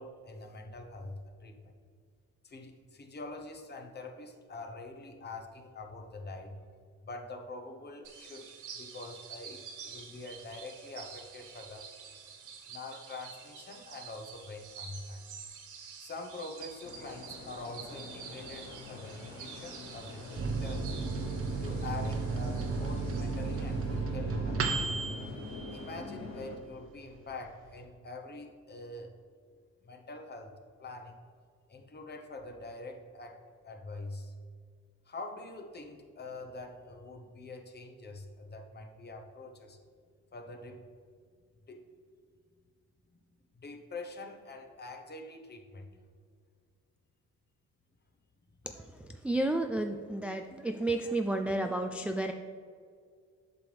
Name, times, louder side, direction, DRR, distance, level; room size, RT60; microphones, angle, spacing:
voice 1, 0.0-1.7 2.4-6.6 7.0-8.5 8.7-11.9 12.7-15.2 16.0-21.1 21.6-24.7 25.7-29.1 29.8-30.5 30.8-31.2 31.7-34.3 35.1-39.8 40.3-40.9 41.7-41.9 43.6-45.9, left 2 dB, 35° left, 4 dB, 1.0 m, -45 dB
sound 1, 8.0-24.0, right 6 dB, 80° right, 1.0 m, -49 dB
sound 2, 16.8-26.6, left 3 dB, 65° left, 1.2 m, -46 dB
Microwave oven, 20.4-26.4 26.8-26.9 27.2-27.8, right 3 dB, 50° right, 1.0 m, -34 dB
voice 2, 48.6-52.3, right 2 dB, 5° right, 5 dB, 0.3 m, -32 dB
8.0 x 6.0 x 3.4 m, 2.1 s
cardioid pair, 90°, 30 cm